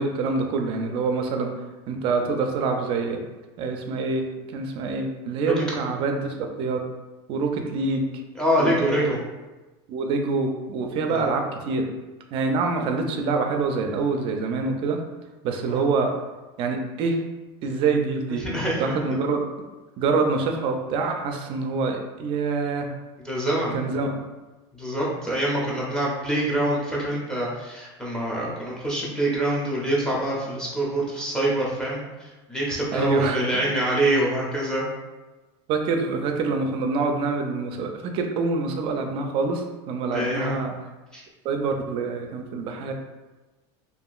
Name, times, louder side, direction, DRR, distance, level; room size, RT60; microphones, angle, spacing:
voice 1, 0.0-1.5 1.9-3.2 3.6-4.3 4.5-6.8 7.3-8.1 8.6-9.1 9.9-11.9 12.3-15.0 15.4-16.1 16.6-17.2 17.6-18.4 18.8-19.5 20.0-22.9 23.7-24.2 32.9-33.6 35.7-40.8 41.4-42.9, right 4 dB, 40° right, 4 dB, 0.4 m, -26 dB
voice 2, 8.4-9.2 11.1-11.2 15.7-15.8 18.4-19.0 23.2-23.8 24.7-34.9 40.1-40.6 41.1-41.2, right 1 dB, 5° left, -5 dB, 0.6 m, -25 dB
2.8 x 2.4 x 2.3 m, 1.2 s
supercardioid pair, 150°, 15 cm